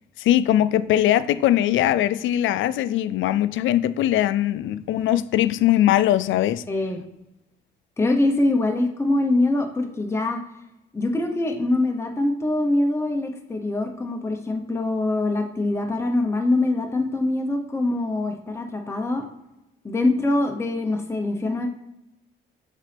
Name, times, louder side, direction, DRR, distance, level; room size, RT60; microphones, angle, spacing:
voice 1, 0.2-6.6, left 12 dB, 75° left, 0.4 m, -21 dB
voice 2, 6.7-7.0 8.0-10.4 10.9-19.3 19.8-21.7, left 2 dB, 15° left, 0.9 m, -23 dB
7.3 x 4.0 x 3.4 m
cardioid pair, 90°, 20 cm